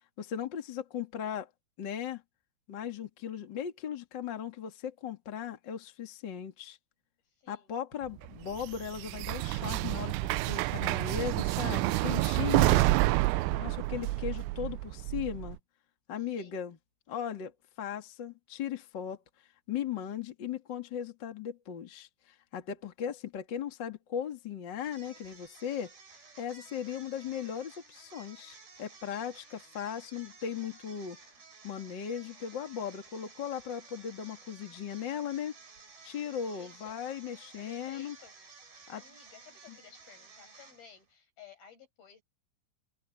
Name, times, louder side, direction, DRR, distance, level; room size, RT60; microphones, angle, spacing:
voice 1, 0.2-1.5 1.8-2.2 2.7-6.8 7.5-12.9 13.5-15.6 16.1-16.8 17.1-17.5 17.8-19.2 19.7-25.9 26.4-31.2 31.6-35.5 36.0-38.1 38.9-39.0 39.7-39.8, left 8 dB, 75° left, 1.0 m, -37 dB
voice 2, 7.3-7.8 10.7-11.6 11.9-12.9 13.6-14.3 16.2-16.7 28.9-29.5 36.5-37.0 37.6-38.4 38.7-42.2, left 6 dB, 45° left, 8.6 m, -56 dB
sound 1, 8.2-15.6, right 19 dB, 90° right, 3.3 m, -29 dB
sound 2, 24.8-41.1, right 4 dB, 45° right, 9.7 m, -54 dB
open air
omnidirectional pair, 5.9 m